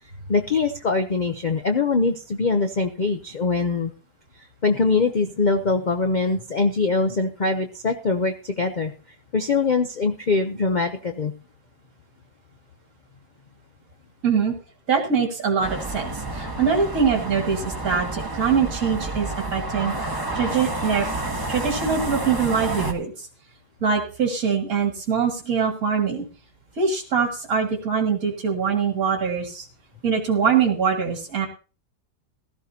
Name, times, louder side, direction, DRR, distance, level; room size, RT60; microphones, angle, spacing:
voice 1, 0.3-3.9 4.6-8.9 9.3-11.3, left 4 dB, 60° left, 6 dB, 0.4 m, -23 dB
voice 2, 14.2-14.5 14.9-19.9 20.3-21.1 21.5-23.3 23.8-26.3 26.8-29.7 30.0-31.5, right 6 dB, 55° right, 1 dB, 2.3 m, -23 dB
sound 1, 15.6-22.9, right 2 dB, 15° right, 1.2 m, -30 dB
16.0 x 13.0 x 2.8 m, 0.36 s
omnidirectional pair, 1.8 m